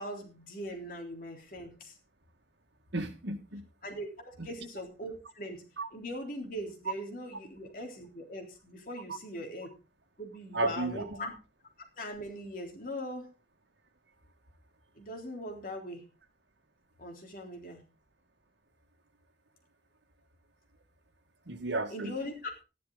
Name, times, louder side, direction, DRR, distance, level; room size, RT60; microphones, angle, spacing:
voice 1, 0.0-1.9 3.8-5.7 5.9-9.7 10.2-11.3 12.0-13.3 15.0-16.0 17.0-17.8 21.9-22.6, equal, 50° left, 2 dB, 3.6 m, -40 dB
voice 2, 2.9-3.6 4.4-4.5 5.8-5.9 9.1-9.2 10.5-11.2 21.5-22.1, right 2 dB, 80° right, 5 dB, 2.0 m, -33 dB
13.5 x 11.0 x 4.0 m, 0.30 s
head